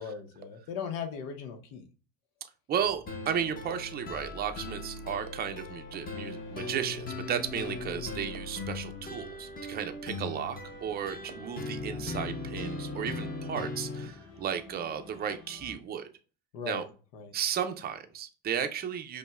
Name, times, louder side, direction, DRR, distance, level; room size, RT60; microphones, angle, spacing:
voice 1, 0.0-1.8 16.5-16.9 17.1-17.3, left 6 dB, 80° left, 0.9 m, -38 dB
voice 2, 2.7-16.1 16.7-16.8 17.3-19.2, right 8 dB, 25° right, 0.4 m, -34 dB
sound 1, 2.8-15.8, left 4 dB, 45° left, 1.3 m, -51 dB
sound 2, 3.1-14.1, left 2 dB, 25° left, 0.7 m, -39 dB
5.2 x 2.1 x 2.3 m
supercardioid pair, 110°, 39 cm